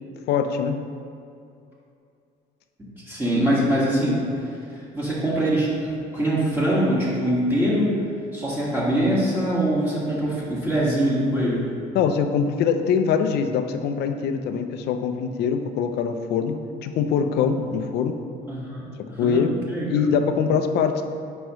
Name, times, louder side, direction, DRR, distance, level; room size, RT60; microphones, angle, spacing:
voice 1, 0.3-0.8 11.9-18.2 19.2-19.5 19.9-21.0, left 6 dB, 80° left, 8 dB, 0.6 m, -23 dB
voice 2, 3.1-4.2 4.7-7.9 8.3-11.7 18.5-19.8, right 1 dB, 10° right, -8 dB, 1.8 m, -23 dB
9.4 x 5.3 x 3.1 m, 2.5 s
cardioid pair, 110°, 17 cm